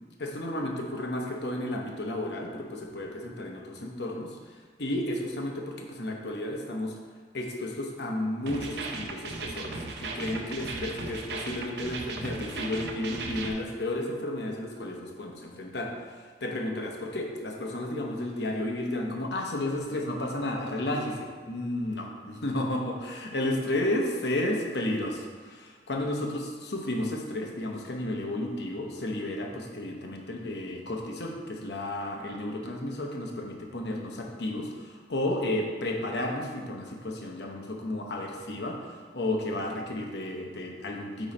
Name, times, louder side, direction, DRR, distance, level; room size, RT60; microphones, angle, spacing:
voice 1, 0.2-4.5 4.8-7.0 7.3-41.3, left 1 dB, 65° left, 1 dB, 0.9 m, -32 dB
sound 1, 8.5-13.5, right 3 dB, 70° right, 0.7 m, -36 dB
8.9 x 3.1 x 4.2 m, 1.5 s
head